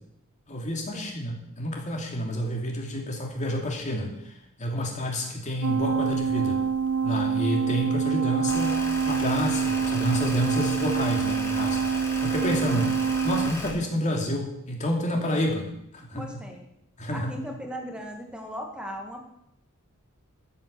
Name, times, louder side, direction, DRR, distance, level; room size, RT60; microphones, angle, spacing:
voice 1, 0.5-6.6 7.0-8.8 9.1-16.4 17.0-17.3, equal, 35° left, 1 dB, 2.8 m, -29 dB
sound 1, 5.6-13.5, right 6 dB, 85° right, 1.0 m, -26 dB
sound 2, 8.5-13.7, left 1 dB, 15° left, 3.1 m, -36 dB
voice 2, 16.2-16.7 17.1-19.2, equal, 5° right, 2 dB, 1.8 m, -38 dB
13.0 x 8.7 x 6.9 m, 0.79 s
head